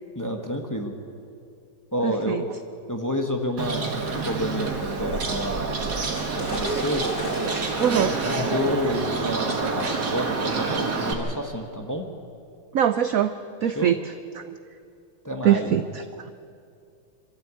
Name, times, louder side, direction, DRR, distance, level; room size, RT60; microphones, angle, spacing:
voice 1, 0.1-0.9 1.9-2.5 2.9-5.7 6.3-7.1 7.8-12.1 13.7-13.9 15.2-15.7, equal, 10° left, 3 dB, 1.2 m, -29 dB
voice 2, 2.0-2.4 7.8-8.2 12.7-13.3 13.6-14.6 15.4-16.3, right 9 dB, 70° right, 10 dB, 0.8 m, -23 dB
Bird, 3.6-11.1, right 3 dB, 55° right, 2.4 m, -27 dB
sound 1, 6.1-11.3, left 1 dB, 35° left, 4.0 m, -40 dB
25.5 x 13.5 x 8.4 m, 2.4 s
omnidirectional pair, 2.2 m